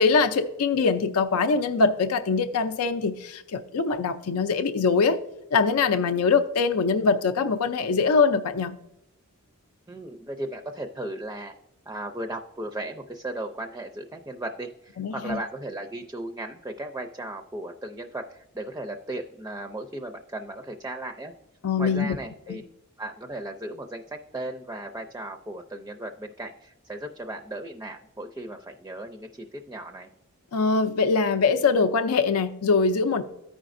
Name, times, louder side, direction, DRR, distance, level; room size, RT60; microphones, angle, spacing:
voice 1, 0.0-5.2 5.5-8.8 15.0-15.4 21.6-22.2 22.5-22.6 30.5-33.2, left 4 dB, 80° left, 9 dB, 0.5 m, -23 dB
voice 2, 9.9-11.5 11.9-21.3 21.8-22.6 23.0-30.1, right 1 dB, 15° right, 4 dB, 0.4 m, -36 dB
14.0 x 5.0 x 2.5 m, 0.84 s
head